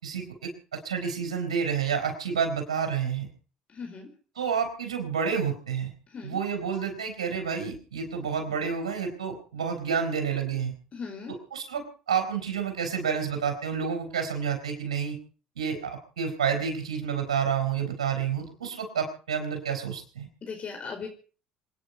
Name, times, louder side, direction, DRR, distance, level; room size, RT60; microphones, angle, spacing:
voice 1, 0.0-3.3 4.3-5.9 6.2-10.7 11.5-15.2 15.6-20.3, right 6 dB, 90° right, 4 dB, 4.8 m, -29 dB
voice 2, 3.7-4.1 6.1-6.4 10.9-11.3 20.4-21.1, left 5 dB, 40° left, 3 dB, 4.8 m, -38 dB
27.0 x 10.0 x 5.4 m, 0.40 s
hypercardioid pair, 65°, 3 cm